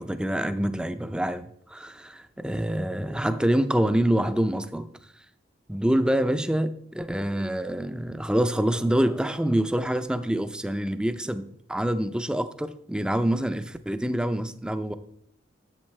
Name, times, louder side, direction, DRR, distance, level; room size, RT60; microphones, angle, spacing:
voice 1, 0.0-4.9 5.7-14.9, right 1 dB, 5° right, 0.4 m, -26 dB
10.5 x 7.7 x 3.2 m
head